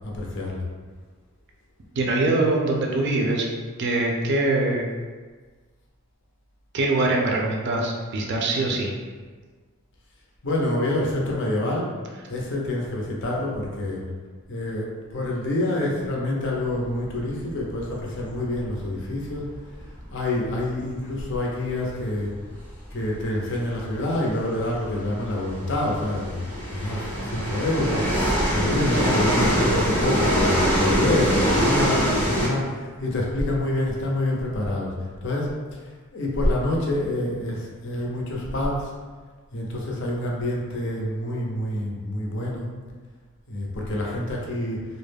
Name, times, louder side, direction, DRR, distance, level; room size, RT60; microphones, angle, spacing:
voice 1, 0.1-0.6 10.4-11.9 12.3-14.0 14.5-19.5 20.1-22.3 22.9-26.4 26.7-28.0 28.5-35.0 35.2-35.5 36.1-38.9 39.5-42.7 43.5-44.9, left 1 dB, 60° left, -2 dB, 0.5 m, -27 dB
voice 2, 2.0-3.5 3.8-4.9 6.7-9.0, right 2 dB, 55° right, 0 dB, 0.4 m, -23 dB
sound 1, 16.9-20.8 21.1-21.2 21.5-21.7 22.6-22.7 23.0-23.1 23.8-32.5, equal, 10° left, 0.6 m, -24 dB
2.3 x 2.0 x 3.2 m, 1.5 s
head